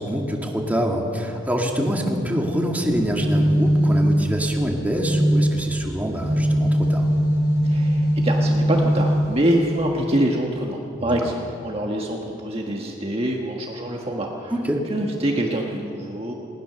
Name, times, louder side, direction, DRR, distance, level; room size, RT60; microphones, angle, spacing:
voice 1, 0.0-7.1 11.0-11.2 14.5-14.8, equal, 10° right, 0 dB, 2.3 m, -25 dB
sound 1, 2.9-9.8, equal, 85° left, 3.7 m, -21 dB
voice 2, 7.6-14.5 14.9-16.3, right 1 dB, 30° right, 0 dB, 1.5 m, -25 dB
20.0 x 19.5 x 6.8 m, 2.7 s
head